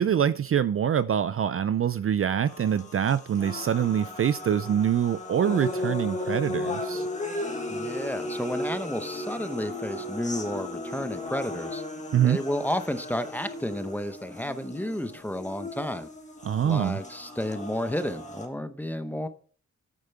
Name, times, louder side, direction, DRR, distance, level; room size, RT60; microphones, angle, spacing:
voice 1, 0.0-7.1 12.1-12.4 16.4-17.0, right 9 dB, 50° right, 0.4 m, -25 dB
sound 1, 2.5-18.5, left 2 dB, 25° left, 1.5 m, -36 dB
voice 2, 7.7-11.8 12.2-16.1 16.6-19.3, left 1 dB, 5° left, 0.7 m, -32 dB
9.1 x 7.3 x 4.5 m
wide cardioid pair, 130°, 30 cm